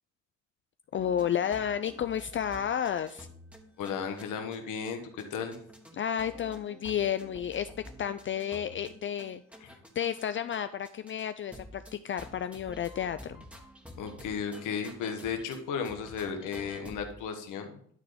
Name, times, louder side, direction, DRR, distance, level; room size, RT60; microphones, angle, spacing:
voice 1, 0.9-3.3 5.9-7.7 8.0-9.4 10.0-13.4, left 9 dB, 40° left, 11 dB, 0.4 m, -31 dB
sound 1, 1.0-4.6 4.9-5.0 5.2-10.6 10.8-11.2 11.5-15.6 15.9-17.2, equal, 5° right, 1.6 m, -50 dB
voice 2, 3.8-5.0 5.3-5.6 9.6-9.7 14.0-17.7, left 6 dB, 90° left, 5 dB, 1.4 m, -34 dB
11.5 x 4.0 x 5.0 m, 0.63 s
cardioid pair, 90°, 30 cm